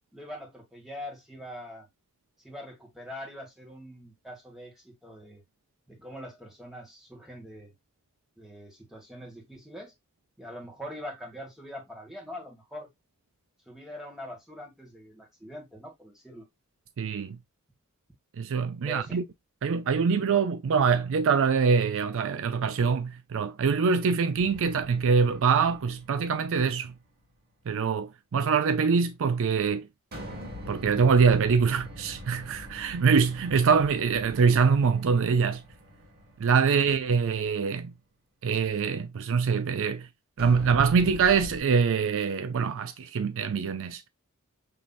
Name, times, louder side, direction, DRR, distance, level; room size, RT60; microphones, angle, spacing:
voice 1, 0.1-1.9 2.4-5.4 5.9-7.7 8.4-9.9 10.4-12.9 13.6-16.4 18.8-19.2 20.1-20.3, equal, ahead, 1.7 m, -43 dB
voice 2, 17.0-17.4 18.4-19.2 19.6-26.9 27.7-29.9 30.7-35.6 36.4-37.9 38.4-40.1 40.4-44.1, right 5 dB, 60° right, 0.4 m, -24 dB
sound 1, 24.4-26.9 30.1-37.3 40.4-41.6, equal, 45° right, 1.7 m, -43 dB
5.6 x 3.1 x 2.4 m
head